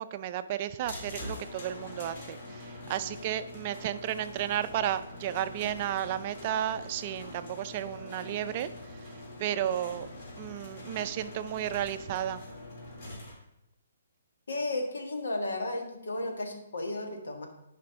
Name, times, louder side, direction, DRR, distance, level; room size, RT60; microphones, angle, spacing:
voice 1, 0.0-10.1 10.4-12.4, right 11 dB, 35° right, 11 dB, 0.4 m, -33 dB
sound 1, 0.8-13.3, left 1 dB, 45° left, 2.2 m, -44 dB
voice 2, 14.5-17.5, left 2 dB, 85° left, 3 dB, 1.6 m, -33 dB
10.5 x 5.0 x 3.5 m, 0.89 s
hypercardioid pair, 160°, 0 cm